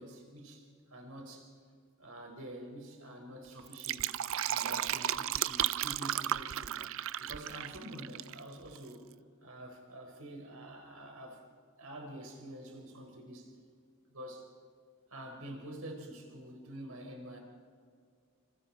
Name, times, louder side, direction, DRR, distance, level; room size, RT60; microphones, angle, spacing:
voice 1, 0.0-1.5 2.0-4.2 4.5-6.8 7.2-9.1 9.4-11.4 11.8-13.5 14.1-14.5 15.1-17.4, right 1 dB, 80° right, 2 dB, 4.4 m, -47 dB
Fill (with liquid), 3.6-8.4 8.7-8.8, right 11 dB, 65° right, 0.5 m, -34 dB
27.5 x 27.0 x 4.4 m, 2.1 s
head